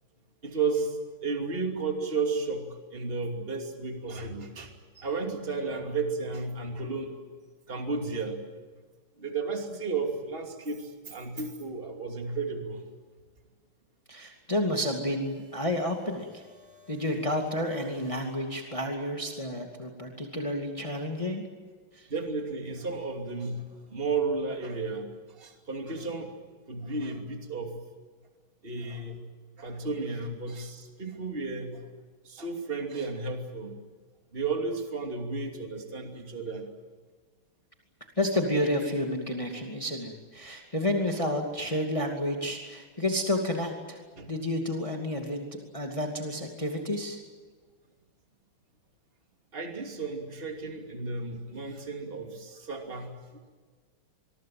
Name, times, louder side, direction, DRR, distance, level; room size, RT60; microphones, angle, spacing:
voice 1, 0.4-7.2 7.7-8.4 9.2-12.8 22.1-26.3 26.7-27.7 28.6-29.2 29.6-31.8 32.2-33.8 34.3-36.7 44.2-44.3 49.5-53.1, right 4 dB, 25° right, 3 dB, 2.9 m, -33 dB
voice 2, 14.1-16.4 16.9-21.4 21.9-22.1 38.2-44.0 44.3-45.5 45.7-47.2, left 1 dB, 15° left, 2 dB, 2.4 m, -30 dB
sound 1, 15.2-19.1, left 4 dB, 70° right, 8.5 m, -56 dB
25.5 x 23.0 x 7.7 m, 1.5 s
omnidirectional pair, 2.3 m